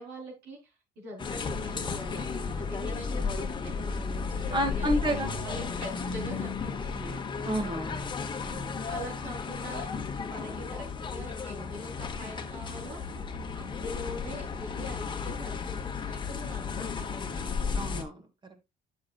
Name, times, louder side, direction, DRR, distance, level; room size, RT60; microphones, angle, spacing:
voice 1, 0.0-5.0 5.4-7.2 8.9-9.9 10.2-13.0 13.6-17.5, equal, 85° right, -1 dB, 4.4 m, -43 dB
sound 1, 1.2-18.0, left 5 dB, 30° left, 1.1 m, -34 dB
voice 2, 4.5-5.3 7.4-8.0 8.4-8.7 17.7-18.2, right 1 dB, 25° right, 7 dB, 1.6 m, -30 dB
9.5 x 6.4 x 2.5 m, 0.24 s
cardioid pair, 110°, 17 cm